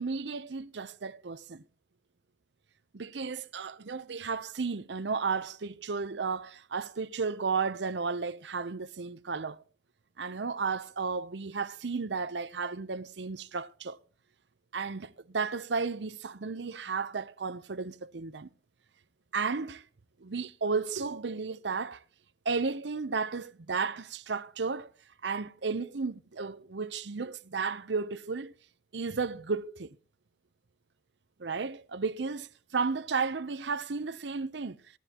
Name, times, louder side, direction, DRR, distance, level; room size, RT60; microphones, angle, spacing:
voice 1, 0.0-1.6 2.9-9.6 10.2-14.0 14.7-18.5 19.3-19.8 20.2-22.0 22.4-24.9 25.2-28.5 28.9-29.9 31.4-34.8, right 4 dB, 75° right, 0.7 m, -33 dB
17.0 x 12.0 x 2.9 m
head